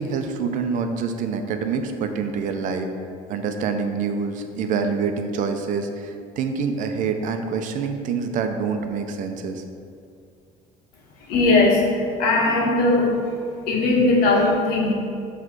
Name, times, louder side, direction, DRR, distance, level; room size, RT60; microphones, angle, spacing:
voice 1, 0.0-2.9 3.3-9.6, right 5 dB, 60° right, 6 dB, 0.6 m, -26 dB
voice 2, 11.2-13.2 13.7-14.9, left 2 dB, 85° left, -1 dB, 1.5 m, -19 dB
7.4 x 3.3 x 6.1 m, 2.4 s
cardioid pair, 140°, 15 cm